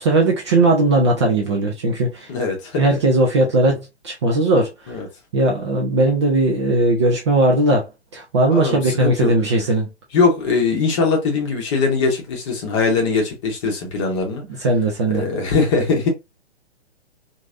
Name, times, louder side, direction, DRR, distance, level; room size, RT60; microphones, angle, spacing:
voice 1, 0.0-2.3 2.8-4.9 5.3-9.9 14.5-15.3, right 2 dB, 25° right, 0.5 m, -18 dB
voice 2, 2.3-2.9 4.9-5.1 8.5-9.3 10.1-14.4 15.1-16.1, left 4 dB, 25° left, 1.0 m, -21 dB
3.0 x 2.6 x 2.5 m
figure-of-eight pair, 120°, 34 cm